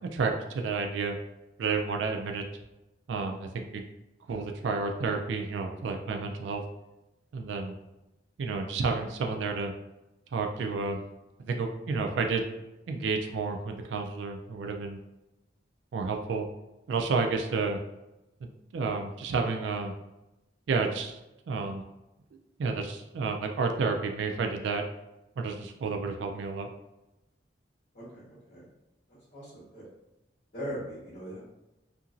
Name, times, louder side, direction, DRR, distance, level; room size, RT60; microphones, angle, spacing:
voice 1, 0.0-1.2 1.6-2.4 3.1-3.8 4.3-6.6 7.3-7.8 8.4-9.7 10.3-11.0 11.4-12.5 12.9-15.0 15.9-16.5 16.9-17.8 18.4-19.9 20.7-21.1 21.5-21.8 22.6-24.8 25.4-26.7, right 4 dB, 80° right, 4 dB, 0.3 m, -30 dB
voice 2, 27.9-28.6 29.3-29.8 30.5-31.4, equal, 50° left, -11 dB, 1.3 m, -40 dB
2.8 x 2.6 x 2.4 m, 0.95 s
head